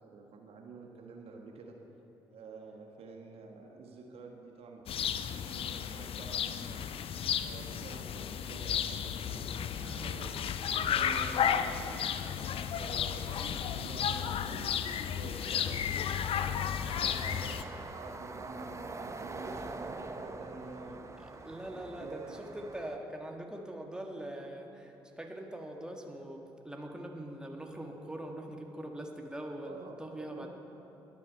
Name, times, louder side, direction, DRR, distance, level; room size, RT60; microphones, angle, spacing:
voice 1, 0.0-1.7 2.3-6.8 7.4-12.0 12.7-16.0 16.2-17.6 17.9-21.0 21.8-22.5 29.6-30.5, right 3 dB, 55° right, 2 dB, 1.4 m, -48 dB
sound 1, 4.9-17.6, left 8 dB, 50° left, 0.6 m, -33 dB
voice 2, 9.8-10.2 10.7-11.1 21.2-30.5, right 1 dB, 5° right, 1 dB, 1.8 m, -43 dB
sound 2, 16.9-23.0, right 3 dB, 25° right, 0.9 m, -44 dB
21.5 x 7.4 x 5.5 m, 3.0 s
figure-of-eight pair, 45°, 12 cm